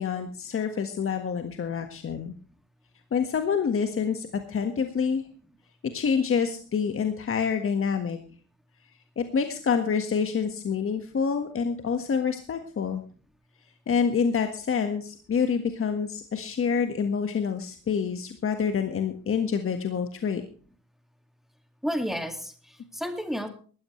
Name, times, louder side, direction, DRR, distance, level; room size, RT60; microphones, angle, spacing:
voice 1, 0.0-2.3 3.1-5.2 5.9-8.2 9.2-13.0 13.9-20.4, left 6 dB, 45° left, 7 dB, 1.6 m, -27 dB
voice 2, 21.8-23.5, equal, ahead, 6 dB, 2.2 m, -31 dB
18.5 x 13.5 x 3.2 m, 0.41 s
cardioid pair, 90°, 30 cm